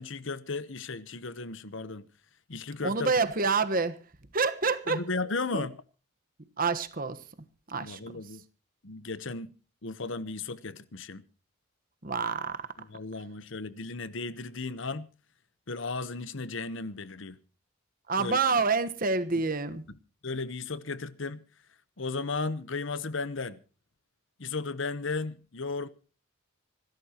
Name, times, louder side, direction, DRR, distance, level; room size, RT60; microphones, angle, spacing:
voice 1, 0.0-2.1 2.5-3.1 4.9-5.8 7.8-8.4 8.8-9.5 9.8-11.2 12.8-15.1 15.7-17.4 18.2-18.6 19.3-19.4 20.2-21.4 22.0-23.6 24.4-25.9, left 3 dB, 60° left, 1.0 m, -35 dB
voice 2, 2.8-4.0 4.3-5.0 5.5-5.7 6.6-7.2 7.7-8.0 12.0-12.7 18.1-19.8, right 4 dB, 40° right, 1.2 m, -27 dB
26.5 x 13.0 x 2.9 m
head